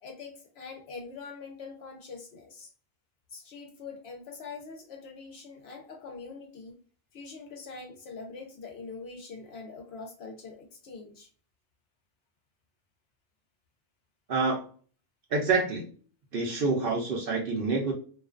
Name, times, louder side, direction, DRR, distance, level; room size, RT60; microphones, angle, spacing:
voice 1, 0.0-2.7 3.3-6.8 7.1-11.3, left 4 dB, 65° left, 4 dB, 0.7 m, -44 dB
voice 2, 15.3-15.9 16.3-17.9, right 4 dB, 60° right, -1 dB, 0.7 m, -27 dB
2.4 x 2.2 x 2.4 m, 0.41 s
omnidirectional pair, 1.3 m